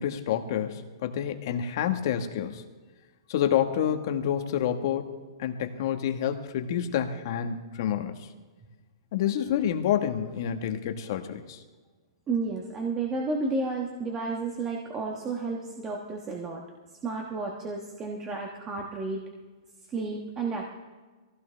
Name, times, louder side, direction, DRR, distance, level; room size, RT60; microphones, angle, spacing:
voice 1, 0.0-2.6 3.3-8.3 9.1-11.6, left 9 dB, 45° left, 6 dB, 1.4 m, -28 dB
voice 2, 12.3-16.6 17.0-19.2 19.9-20.7, right 3 dB, 15° right, 0 dB, 1.3 m, -32 dB
22.0 x 16.0 x 3.4 m, 1.3 s
hypercardioid pair, 165°, 3 cm